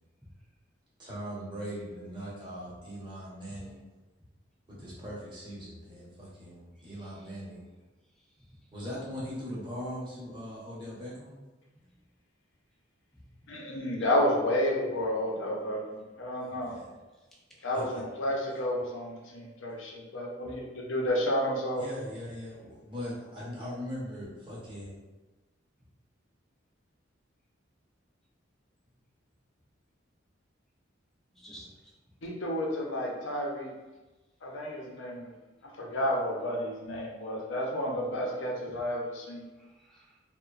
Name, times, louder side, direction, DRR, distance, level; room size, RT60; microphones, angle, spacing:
voice 1, 1.0-3.8 4.7-7.7 8.7-11.3 16.4-16.9 17.7-18.0 21.8-24.9, equal, 25° right, -8 dB, 0.8 m, -40 dB
voice 2, 6.8-7.3 8.4-8.6 13.1-13.2 14.0-14.1 17.6-17.7 31.3-31.9 39.6-40.2, equal, ahead, -4 dB, 0.4 m, -54 dB
voice 3, 13.5-15.8 16.2-16.8 17.6-21.8 32.2-33.7 34.4-35.3 35.8-39.5, left 1 dB, 80° left, -1 dB, 0.6 m, -31 dB
2.9 x 2.1 x 2.3 m, 1.2 s
head